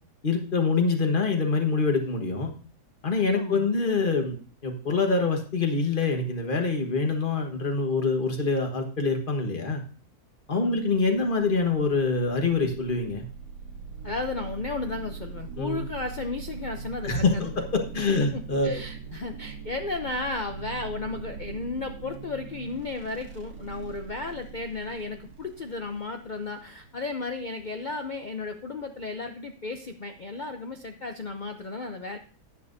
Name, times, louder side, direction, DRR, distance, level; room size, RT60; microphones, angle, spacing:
voice 1, 0.2-2.5 3.0-9.8 10.5-13.2 15.6-15.8 17.0-18.8, left 4 dB, 35° left, 4 dB, 1.4 m, -25 dB
voice 2, 3.3-3.7 10.5-10.8 14.0-17.4 18.3-32.2, left 3 dB, 65° left, 6 dB, 0.4 m, -34 dB
sound 1, 10.8-28.1, right 6 dB, 90° right, 1.7 m, -42 dB
10.5 x 10.0 x 2.6 m, 0.40 s
omnidirectional pair, 1.7 m